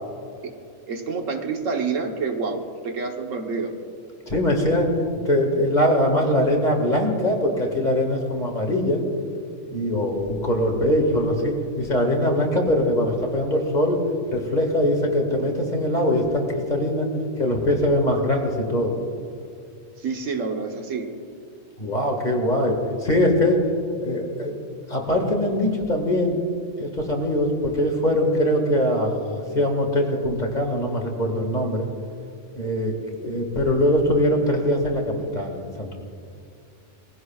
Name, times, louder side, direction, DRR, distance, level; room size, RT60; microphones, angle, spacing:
voice 1, 0.9-3.7 20.0-21.1, right 4 dB, 85° right, 4 dB, 1.5 m, -28 dB
voice 2, 4.3-4.9 5.3-9.0 9.7-14.0 14.3-17.1 17.4-19.0 21.8-23.6 24.0-24.6 24.9-26.4 26.8-31.9 32.5-35.9, left 1 dB, 35° left, 1 dB, 2.0 m, -22 dB
20.5 x 16.0 x 2.4 m, 2.3 s
omnidirectional pair, 1.3 m